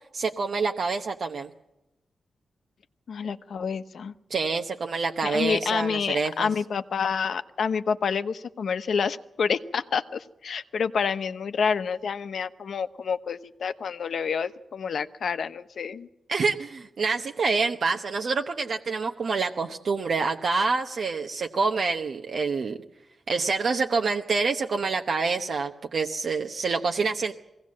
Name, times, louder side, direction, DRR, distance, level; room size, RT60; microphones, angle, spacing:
voice 1, 0.1-1.5 4.3-6.5 16.3-22.8 23.3-27.3, right 4 dB, 60° right, 3 dB, 0.9 m, -27 dB
voice 2, 3.1-4.1 5.2-16.1, left 6 dB, 70° left, 11 dB, 0.9 m, -28 dB
22.0 x 17.0 x 7.5 m, 0.96 s
wide cardioid pair, 130°, 0 cm